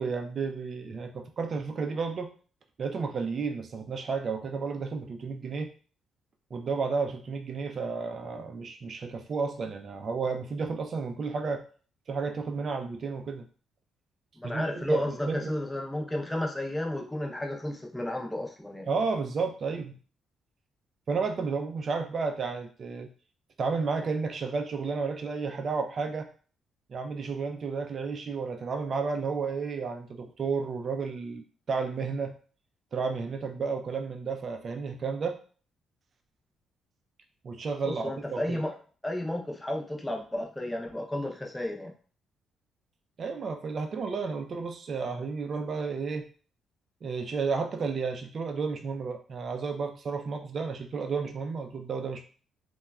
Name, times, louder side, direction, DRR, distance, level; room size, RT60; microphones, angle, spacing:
voice 1, 0.0-2.3 2.8-5.7 6.5-11.6 12.1-13.5 14.4-15.5 18.9-20.0 21.1-23.1 23.6-26.3 26.9-31.4 31.7-32.4 32.9-35.4 37.4-38.6 43.2-46.3 47.0-52.2, right 4 dB, 50° right, 5 dB, 0.4 m, -32 dB
voice 2, 14.4-18.9 37.9-38.7 39.0-41.9, left 1 dB, 10° left, 1 dB, 0.6 m, -32 dB
2.9 x 2.2 x 2.3 m, 0.41 s
cardioid pair, 90°, 0 cm